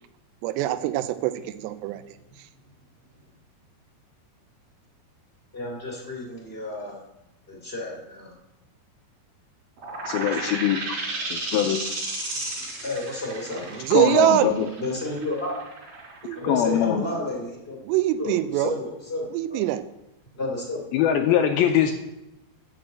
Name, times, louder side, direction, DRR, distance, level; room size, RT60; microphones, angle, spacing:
voice 1, 0.4-1.3 1.6-2.0 13.8-14.5 16.2-16.4 17.8-18.7 19.3-19.8, right 13 dB, 85° right, 13 dB, 2.7 m, -23 dB
voice 2, 5.5-7.0 7.5-8.3 10.1-10.5 12.8-13.8 14.8-15.6 16.3-17.8 18.2-19.6 20.4-20.8, left 2 dB, 25° left, -2 dB, 1.5 m, -32 dB
sound 1, 9.8-17.1, right 2 dB, 60° right, 5.5 m, -33 dB
voice 3, 10.1-10.8 11.3-11.8 13.9-14.7 16.4-17.0 20.9-22.0, left 10 dB, 90° left, 4 dB, 2.2 m, -22 dB
11.5 x 6.3 x 7.8 m, 0.92 s
omnidirectional pair, 5.1 m